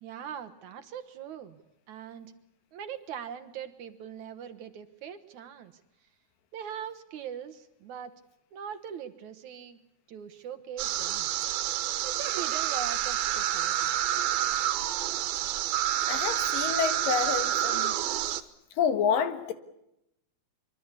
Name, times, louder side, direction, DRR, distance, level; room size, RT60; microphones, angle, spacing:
voice 1, 0.0-1.6 1.9-2.3 2.7-5.7 6.5-8.2 8.5-9.8 10.1-11.3 12.0-14.0, right 8 dB, 65° right, 7 dB, 2.3 m, -41 dB
sound 1, 10.8-18.4, right 12 dB, 90° right, 3.1 m, -28 dB
voice 2, 16.1-18.0 18.8-19.5, left 7 dB, 70° left, 10 dB, 3.2 m, -28 dB
24.5 x 24.0 x 8.3 m, 0.84 s
omnidirectional pair, 4.2 m